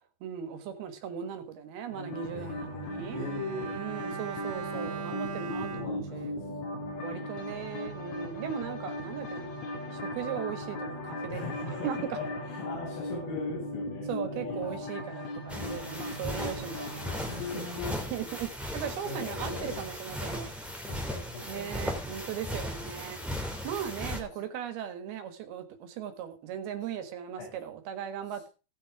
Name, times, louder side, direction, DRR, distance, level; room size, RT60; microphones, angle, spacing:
voice 1, 0.2-3.2 3.7-6.4 7.0-9.5 9.9-12.2 14.1-17.2 18.1-20.5 21.4-23.2 23.6-28.5, right 9 dB, 80° right, 8 dB, 3.5 m, -38 dB
sound 1, 1.9-18.0, left 2 dB, 50° left, 3.0 m, -38 dB
voice 2, 2.3-3.7 5.4-7.0 11.3-11.9 12.2-14.8 15.1-16.1 17.3-17.9 18.6-20.1 20.6-21.7 27.4-27.5 28.3-28.4, left 2 dB, 70° left, -7 dB, 7.4 m, -41 dB
Bowed string instrument, 2.8-7.3 7.5-7.7, right 6 dB, 60° right, 2.6 m, -41 dB
sound 2, 15.5-24.2, equal, ahead, 2.0 m, -37 dB
18.0 x 6.3 x 4.8 m, 0.33 s
omnidirectional pair, 4.4 m